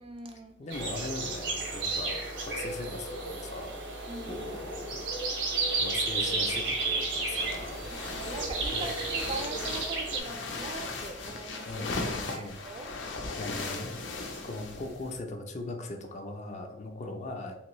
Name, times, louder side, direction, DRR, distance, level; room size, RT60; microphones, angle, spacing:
voice 1, 0.0-0.5 4.1-4.5 7.8-11.7 12.0-12.9 14.3-14.6, right 3 dB, 30° right, 5 dB, 0.4 m, -41 dB
voice 2, 0.6-3.7 4.3-5.1 5.8-8.2 8.7-8.9 11.7-12.6 13.4-14.0 14.4-17.5, left 2 dB, 40° left, 4 dB, 0.4 m, -39 dB
sound 1, 0.7-10.2, right 3 dB, 75° right, 0.8 m, -32 dB
sound 2, 7.4-15.2, left 3 dB, 85° left, 0.6 m, -38 dB
3.5 x 2.5 x 3.0 m, 0.80 s
head